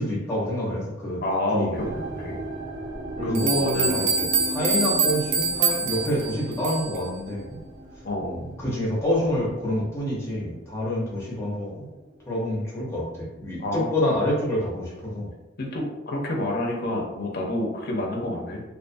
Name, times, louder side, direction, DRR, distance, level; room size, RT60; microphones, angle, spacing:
voice 1, 0.0-1.2 1.5-1.9 3.2-7.6 8.2-11.9 12.2-15.3, left 1 dB, 15° left, -5 dB, 0.7 m, -27 dB
voice 2, 1.2-2.4 3.2-4.0 8.0-8.3 13.6-13.9 15.6-18.6, left 1 dB, 55° left, -1 dB, 0.6 m, -27 dB
sound 1, 1.7-12.9 13.2-13.8 14.4-14.5, right 1 dB, 35° right, 0.9 m, -38 dB
sound 2, 2.9-3.0 3.3-7.0, right 5 dB, 65° right, 0.4 m, -25 dB
2.4 x 2.4 x 2.5 m, 1.0 s
head